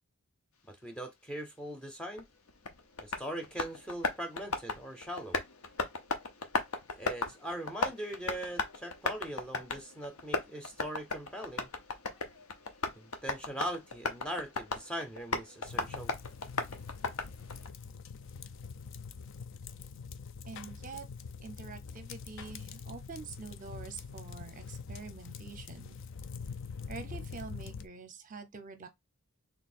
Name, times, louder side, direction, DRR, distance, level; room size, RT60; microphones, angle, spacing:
voice 1, 0.7-2.3 3.0-5.4 6.9-11.7 13.0-16.1, right 1 dB, 5° left, 0.6 m, -40 dB
Tap, 2.2-17.7, left 3 dB, 80° left, 0.8 m, -37 dB
sound 1, 15.6-27.9, left 5 dB, 60° left, 0.4 m, -45 dB
voice 2, 20.5-21.0 21.4-26.0 26.9-28.9, right 4 dB, 35° right, 0.6 m, -46 dB
3.4 x 2.8 x 4.2 m
head